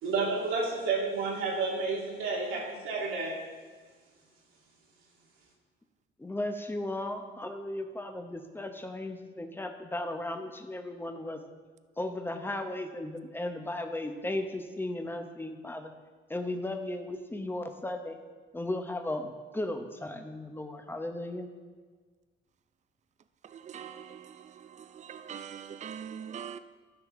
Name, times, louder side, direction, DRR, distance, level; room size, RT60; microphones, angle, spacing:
voice 1, 0.0-3.4, right 4 dB, 85° right, -2 dB, 2.3 m, -30 dB
voice 2, 6.2-11.4 12.0-15.9 16.3-18.2 18.5-21.5, left 1 dB, 10° left, 6 dB, 1.0 m, -36 dB
voice 3, 23.7-24.2 25.0-26.6, right 8 dB, 35° right, 12 dB, 0.5 m, -41 dB
13.5 x 5.8 x 3.8 m, 1.5 s
cardioid pair, 90°, 20 cm